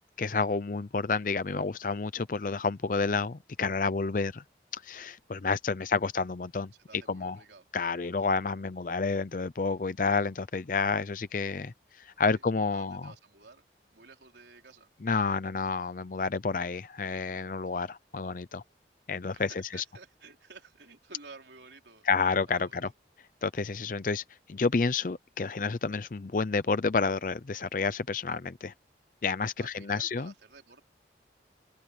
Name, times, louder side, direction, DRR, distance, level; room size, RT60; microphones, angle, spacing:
voice 1, 0.2-4.4 4.7-7.4 7.7-13.1 15.0-18.6 19.1-19.8 22.1-22.9 23.4-24.2 24.5-28.7 29.2-30.3, left 4 dB, 50° left, 0.5 m, -30 dB
voice 2, 6.7-7.7 12.3-12.4 12.7-13.6 13.9-14.9 19.3-22.1 22.5-22.9 29.6-30.8, right 4 dB, 80° right, 3.9 m, -52 dB
head